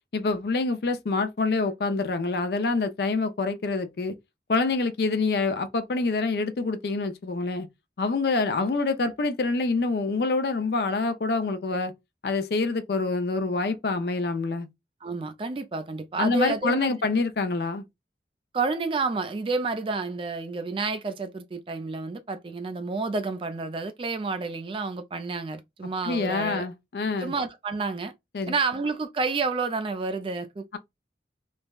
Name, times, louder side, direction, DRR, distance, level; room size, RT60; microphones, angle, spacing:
voice 1, 0.1-4.1 4.5-7.7 8.0-11.9 12.2-14.7 16.2-17.8 26.0-27.3 28.3-28.6, left 3 dB, 65° left, 0.5 m, -26 dB
voice 2, 15.0-16.9 18.5-26.7 27.2-28.1 28.5-30.6, right 4 dB, 30° right, 0.3 m, -30 dB
3.3 x 2.1 x 2.2 m
head